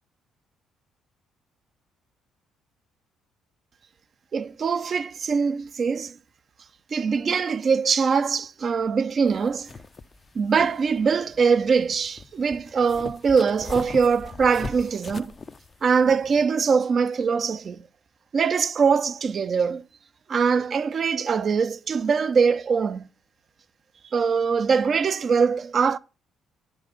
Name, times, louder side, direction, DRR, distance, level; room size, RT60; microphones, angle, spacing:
voice 1, 4.3-6.1 6.9-9.7 10.3-15.3 15.8-17.8 18.3-19.8 20.3-23.1 24.1-26.0, right 5 dB, 45° right, 0.7 m, -22 dB
sound 1, 9.3-16.4, left 4 dB, 35° left, 0.6 m, -41 dB
10.5 x 5.5 x 7.0 m
figure-of-eight pair, 45°, 0 cm